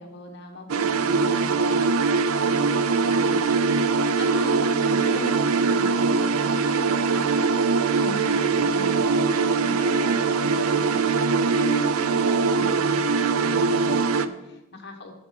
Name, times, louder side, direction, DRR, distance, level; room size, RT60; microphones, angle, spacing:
voice 1, 0.0-1.8 2.3-3.4 4.1-7.3 8.0-15.1, equal, 50° left, 3 dB, 1.4 m, -39 dB
sound 1, 0.7-14.3, right 4 dB, 75° right, 0.5 m, -22 dB
9.7 x 7.8 x 5.2 m, 1.0 s
head